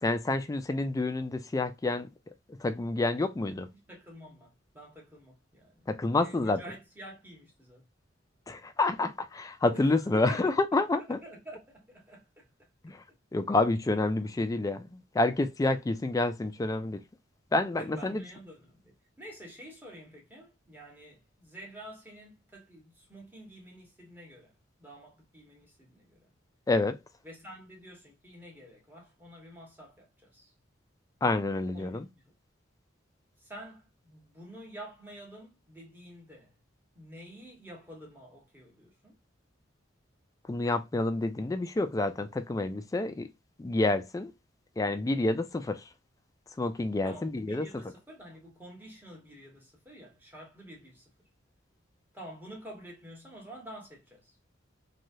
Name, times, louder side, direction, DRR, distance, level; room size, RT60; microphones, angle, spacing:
voice 1, 0.0-2.1 2.6-3.7 5.9-6.6 8.5-11.2 12.8-13.0 13.3-17.0 17.5-18.2 26.7-27.0 31.2-32.1 40.5-43.3 43.6-44.3 44.8-45.8 46.6-47.7, left 2 dB, 20° left, 0.3 m, -28 dB
voice 2, 3.7-5.9 6.1-7.8 9.7-12.5 17.8-24.5 24.8-26.3 27.2-30.5 31.7-32.3 33.4-36.5 36.9-39.1 47.0-51.1 52.1-54.3, right 1 dB, 10° right, 1.1 m, -49 dB
3.0 x 2.3 x 2.6 m
head